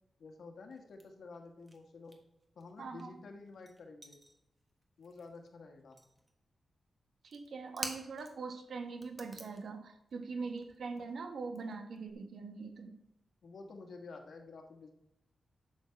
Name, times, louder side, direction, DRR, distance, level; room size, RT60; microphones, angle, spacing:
voice 1, 0.2-2.2 2.5-4.2 5.0-6.0 13.4-14.9, left 3 dB, 60° left, 4 dB, 1.5 m, -50 dB
sound 1, 0.7-1.8 2.0-5.5 5.8-6.3 7.2-8.5 8.8-12.1, right 1 dB, 20° right, 1.5 m, -49 dB
voice 2, 2.8-3.1 7.2-13.0, right 4 dB, 65° right, 6 dB, 1.2 m, -42 dB
11.0 x 7.1 x 4.5 m, 0.83 s
wide cardioid pair, 175°, 0 cm